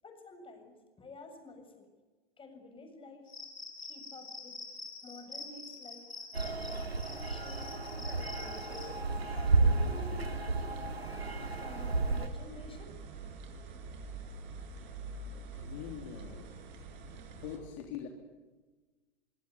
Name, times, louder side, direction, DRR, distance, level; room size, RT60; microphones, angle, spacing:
voice 1, 0.0-1.9 2.4-3.3 3.9-4.6 5.0-6.1 6.4-7.8 8.1-9.0 9.3-10.4 11.6-13.0 14.0-14.1, left 2 dB, 15° left, 5 dB, 7.3 m, -50 dB
Cricket, 3.3-8.9, left 3 dB, 75° left, 7.6 m, -46 dB
sound 1, 6.3-12.3, right 3 dB, 85° right, 2.4 m, -32 dB
sound 2, 8.7-17.6, right 4 dB, 50° right, 6.5 m, -46 dB
voice 2, 14.8-15.2 15.5-16.6 17.3-18.1, left 8 dB, 50° left, 3 dB, 3.5 m, -44 dB
25.5 x 25.0 x 8.5 m, 1.3 s
figure-of-eight pair, 95°, 30 cm